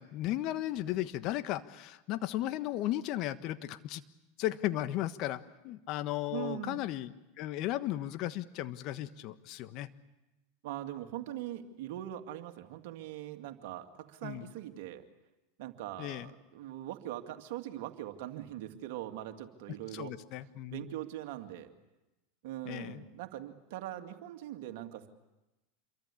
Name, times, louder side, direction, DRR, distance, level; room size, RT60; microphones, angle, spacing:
voice 1, 0.0-4.0 4.4-9.9 14.2-14.5 16.0-16.3 19.9-20.9 22.6-23.1, left 14 dB, 50° left, 12 dB, 1.4 m, -35 dB
voice 2, 6.3-6.9 10.6-15.0 15.6-20.1 20.7-21.7 22.4-25.1, right 12 dB, 65° right, 6 dB, 2.3 m, -41 dB
27.5 x 23.0 x 8.6 m, 1.0 s
hypercardioid pair, 95°, 0 cm